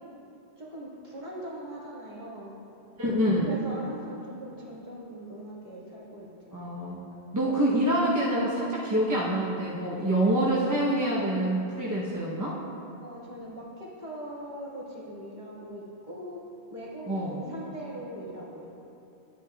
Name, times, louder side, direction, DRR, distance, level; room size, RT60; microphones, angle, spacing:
voice 1, 0.6-2.6 3.5-6.6 7.4-7.7 13.0-16.4 16.7-18.7, equal, 40° right, -7 dB, 1.9 m, -41 dB
voice 2, 3.0-3.5 6.5-7.0 7.3-12.5 17.1-17.5, right 1 dB, 20° right, -6 dB, 0.8 m, -26 dB
11.0 x 9.1 x 2.4 m, 2.7 s
omnidirectional pair, 1.1 m